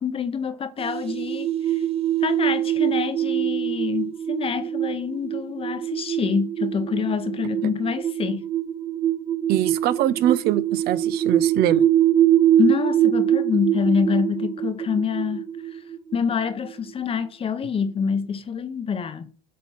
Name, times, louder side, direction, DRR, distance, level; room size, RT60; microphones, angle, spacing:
voice 1, 0.0-1.8 2.2-8.5 12.6-15.4 15.7-15.8 16.1-19.3, left 6 dB, 30° left, 0.9 m, -26 dB
sound 1, 0.8-17.1, right 11 dB, 30° right, 1.1 m, -24 dB
voice 2, 9.5-11.8, right 12 dB, 50° right, 0.5 m, -23 dB
8.4 x 2.9 x 5.8 m
hypercardioid pair, 95°, 20 cm